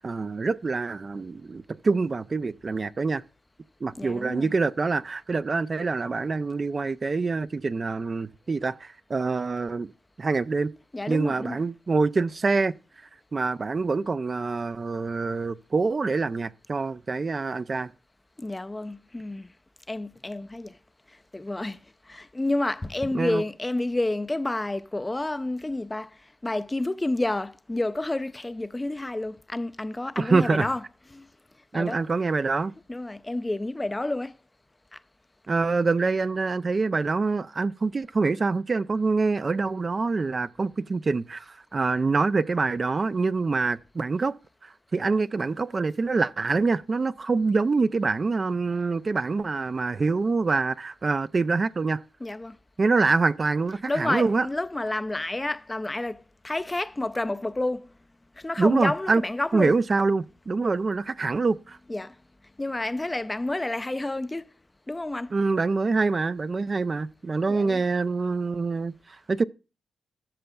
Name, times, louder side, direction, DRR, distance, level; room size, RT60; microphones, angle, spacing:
voice 1, 0.0-3.2 3.8-9.9 10.2-10.7 11.1-12.7 13.3-17.9 23.1-23.4 30.2-30.7 31.7-32.7 35.5-44.3 44.6-52.0 52.8-54.5 58.6-59.2 59.5-61.8 65.3-69.4, right 4 dB, 45° right, 0.4 m, -25 dB
voice 2, 3.9-4.5 10.9-11.6 18.4-19.5 19.9-20.8 21.3-21.8 22.1-26.1 26.4-31.3 31.7-32.0 32.9-34.3 52.2-52.6 53.7-57.9 58.4-59.8 61.9-62.1 62.6-64.5 64.9-65.4 67.5-67.8, left 2 dB, 20° left, 0.4 m, -30 dB
13.0 x 6.6 x 2.3 m
supercardioid pair, 50°, 0 cm